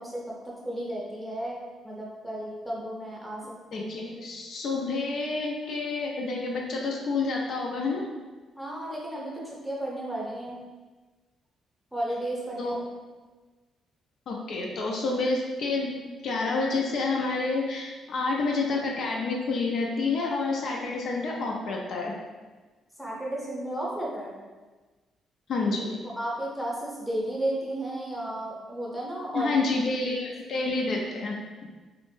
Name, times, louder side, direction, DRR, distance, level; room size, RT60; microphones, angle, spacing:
voice 1, 0.0-1.6 1.8-4.2 8.6-10.6 11.9-12.9 23.0-24.4 26.0-29.6 30.0-30.2, right 1 dB, ahead, -5 dB, 0.7 m, -33 dB
voice 2, 3.7-8.1 12.6-12.7 14.3-16.0 16.2-22.1 25.5-26.0 29.3-31.7, left 3 dB, 65° left, -1 dB, 0.4 m, -29 dB
2.4 x 2.1 x 3.1 m, 1.3 s
cardioid pair, 90°, 0 cm